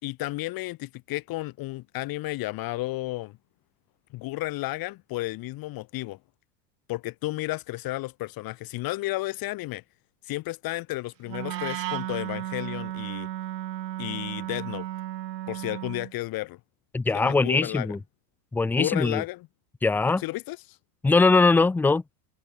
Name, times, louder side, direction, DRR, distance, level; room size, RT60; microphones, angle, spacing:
voice 1, 0.0-3.4 4.1-6.2 6.9-9.8 10.2-13.3 14.0-14.9 15.5-16.6 17.1-18.0 18.8-19.5 20.2-20.6, left 19 dB, 45° left, 6.9 m, -32 dB
Wind instrument woodwind instrument, 11.3-16.1, right 13 dB, 80° right, 3.8 m, -34 dB
voice 2, 16.9-18.0 18.5-19.2 19.8-20.2 21.0-22.0, left 3 dB, 5° left, 0.4 m, -21 dB
supercardioid pair, 120°, 49 cm